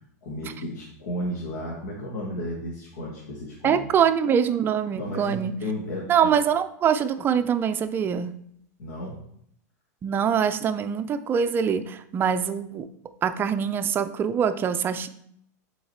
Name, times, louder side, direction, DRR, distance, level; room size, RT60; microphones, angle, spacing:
voice 1, 0.2-3.9 4.9-6.1 8.8-9.3, left 1 dB, 75° left, -3 dB, 1.7 m, -33 dB
voice 2, 3.6-5.6 6.1-8.3 10.0-12.9 13.2-15.1, right 7 dB, 25° right, 10 dB, 0.4 m, -24 dB
7.7 x 4.0 x 4.3 m, 0.69 s
supercardioid pair, 135°, 9 cm